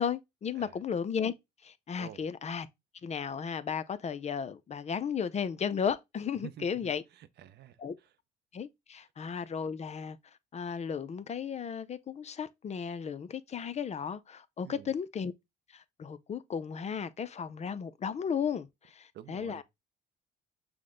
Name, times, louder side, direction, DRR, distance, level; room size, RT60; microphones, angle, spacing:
voice 1, 0.0-1.3 1.6-2.7 3.0-7.0 7.8-8.0 8.5-10.2 10.5-15.3 15.7-19.6, left 7 dB, 35° left, 0.5 m, -34 dB
voice 2, 6.4-8.1 14.6-14.9 19.1-19.6, right 11 dB, 55° right, 0.5 m, -49 dB
5.8 x 2.1 x 3.7 m
supercardioid pair, 75°, 20 cm